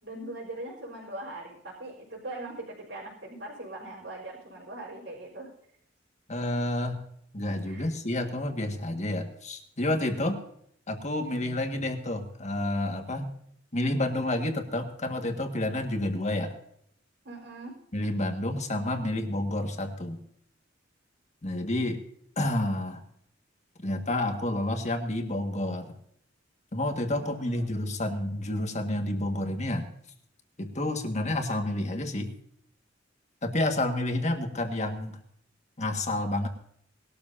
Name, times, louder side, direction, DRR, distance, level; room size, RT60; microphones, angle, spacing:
voice 1, 0.0-5.5 7.7-7.9 17.2-17.8 27.1-27.7, right 2 dB, 65° right, -6 dB, 4.4 m, -41 dB
voice 2, 6.3-7.0 7.3-10.4 10.9-13.3 13.7-16.5 17.9-20.2 21.4-22.0 22.4-23.0 23.8-26.0 26.7-29.9 30.6-32.3 33.4-35.2 35.8-36.5, left 1 dB, 40° left, 5 dB, 1.8 m, -29 dB
20.5 x 12.5 x 2.8 m, 0.69 s
head